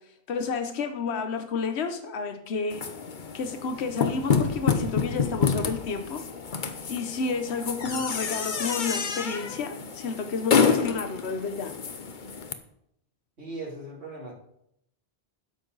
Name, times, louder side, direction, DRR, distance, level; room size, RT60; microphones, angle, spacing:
voice 1, 0.3-2.8 3.3-6.2 6.9-11.7, left 4 dB, 80° left, 7 dB, 1.2 m, -31 dB
sound 1, 2.7-12.5, left 5 dB, 50° left, 1.0 m, -28 dB
voice 2, 13.4-14.3, right 2 dB, 90° right, -4 dB, 3.4 m, -38 dB
12.5 x 10.0 x 4.0 m, 0.77 s
omnidirectional pair, 1.1 m